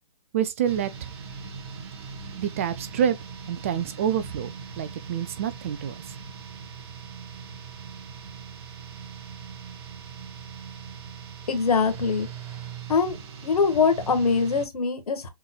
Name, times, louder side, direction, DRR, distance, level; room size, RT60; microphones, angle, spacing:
voice 1, 0.3-0.9 2.4-3.2 3.5-6.2, right 9 dB, 20° right, 0.3 m, -27 dB
sound 1, 0.6-14.7, right 6 dB, 40° right, 1.5 m, -40 dB
voice 2, 11.5-12.3 12.9-13.2 13.4-15.3, left 5 dB, 70° left, 1.7 m, -23 dB
6.6 x 3.1 x 2.3 m
hypercardioid pair, 140°, 20 cm